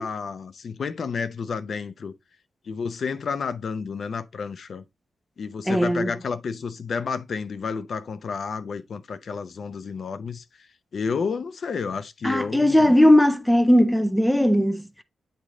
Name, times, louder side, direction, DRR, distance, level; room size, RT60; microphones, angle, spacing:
voice 1, 0.0-2.1 2.7-4.8 5.4-10.7 10.9-12.9, left 5 dB, 60° left, 0.6 m, -31 dB
voice 2, 5.7-6.1 12.2-14.8, left 1 dB, 5° left, 0.4 m, -18 dB
8.6 x 3.2 x 3.6 m
cardioid pair, 105°, 0 cm